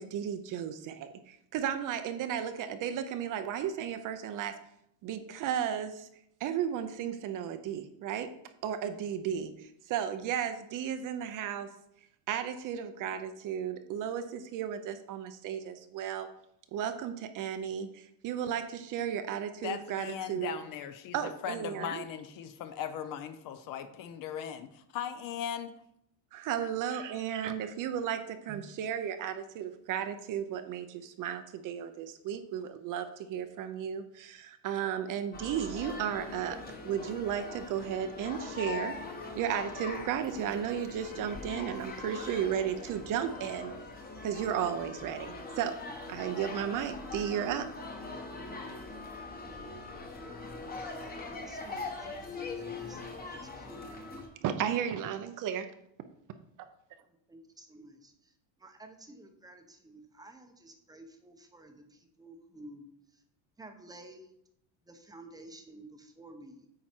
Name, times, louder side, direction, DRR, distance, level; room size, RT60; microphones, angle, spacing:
voice 1, 0.0-4.5 5.0-6.1 6.4-8.3 8.6-11.7 12.3-16.3 16.7-20.6 21.1-22.1 26.3-36.6 36.8-39.0 39.3-43.7 44.2-45.8 46.1-47.7 54.4-55.7, right 9 dB, 40° right, 9 dB, 0.6 m, -34 dB
voice 2, 19.6-25.7 26.6-26.7, left 9 dB, 45° left, 10 dB, 0.6 m, -38 dB
sound 1, 35.3-54.3, left 3 dB, 20° left, 1.0 m, -42 dB
voice 3, 51.3-54.2 57.0-63.2 63.6-64.3 64.8-66.7, right 1 dB, 10° right, 5 dB, 0.7 m, -52 dB
8.6 x 4.5 x 4.4 m, 0.75 s
cardioid pair, 140°, 49 cm